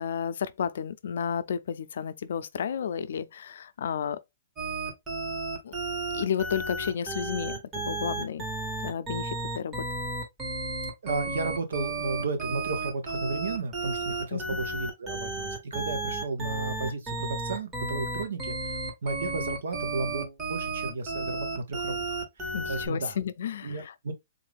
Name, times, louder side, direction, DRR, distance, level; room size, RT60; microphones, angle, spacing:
voice 1, 0.0-4.2 5.6-5.7 6.1-8.5 8.8-9.9 14.3-14.6 22.5-23.9, left 7 dB, 75° left, 0.4 m, -32 dB
sound 1, 4.6-22.9, right 2 dB, 20° right, 1.2 m, -33 dB
voice 2, 11.0-23.2 23.6-24.1, right 3 dB, 85° right, 1.1 m, -34 dB
3.7 x 2.5 x 3.2 m
hypercardioid pair, 160°, 0 cm